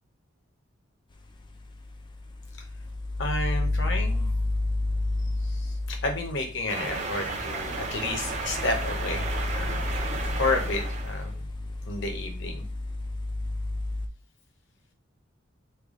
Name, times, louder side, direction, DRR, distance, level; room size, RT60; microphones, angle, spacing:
sound 1, 1.2-14.1, left 2 dB, 25° left, 0.3 m, -31 dB
voice 1, 3.2-4.3 5.4-9.2 9.5-9.8 10.4-11.5 11.9-12.6, left 2 dB, 60° left, 4 dB, 0.8 m, -31 dB
sound 2, 6.7-11.3, right 3 dB, 35° right, 0.6 m, -33 dB
3.3 x 2.3 x 3.6 m, 0.37 s
head